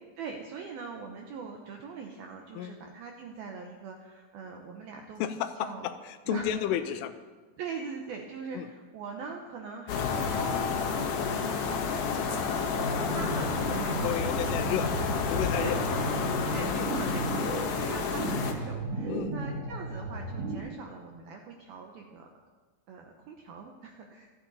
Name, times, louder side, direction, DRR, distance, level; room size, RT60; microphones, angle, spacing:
voice 1, 0.2-5.2 5.6-5.9 6.3-6.6 7.6-14.9 15.6-16.2 16.5-22.4 22.9-24.3, right 5 dB, 80° right, 2 dB, 2.1 m, -42 dB
voice 2, 5.2-7.1 8.5-8.7 12.1-12.3 12.8-13.0 14.0-14.9 15.3-15.8 19.1-19.3, left 11 dB, 90° left, 10 dB, 3.3 m, -32 dB
Night Atmo Churchbells, 9.9-18.5, left 5 dB, 65° left, 2.5 m, -30 dB
sound 1, 12.8-20.6, right 2 dB, 55° right, 1.8 m, -34 dB
27.0 x 9.7 x 4.2 m, 1.3 s
omnidirectional pair, 5.7 m